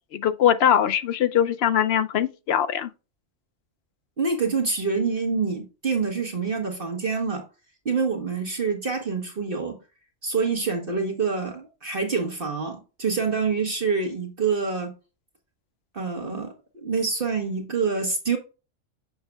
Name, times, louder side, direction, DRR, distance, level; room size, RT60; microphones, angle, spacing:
voice 1, 0.1-2.9, left 9 dB, 65° left, 0.7 m, -21 dB
voice 2, 4.2-7.4 7.8-9.8 10.2-14.9 15.9-18.4, right 5 dB, 45° right, 1.3 m, -26 dB
7.1 x 6.4 x 2.3 m
omnidirectional pair, 1.3 m